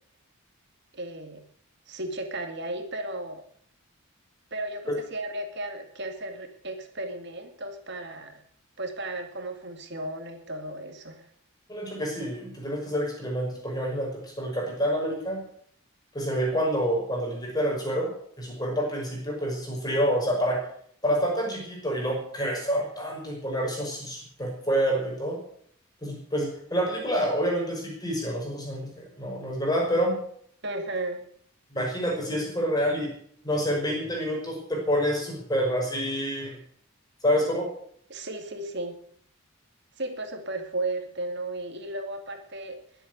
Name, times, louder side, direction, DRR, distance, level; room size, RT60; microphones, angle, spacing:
voice 1, 0.9-1.4 1.9-3.4 4.5-8.4 8.8-11.3 30.6-31.2 38.1-39.0 40.0-42.8, right 2 dB, 50° right, 5 dB, 2.4 m, -34 dB
voice 2, 11.7-15.4 16.1-18.1 18.4-20.6 21.0-25.4 26.0-30.2 31.7-33.1 33.4-36.6 37.2-37.7, equal, 15° left, 0 dB, 5.5 m, -27 dB
21.5 x 8.2 x 8.1 m, 0.63 s
head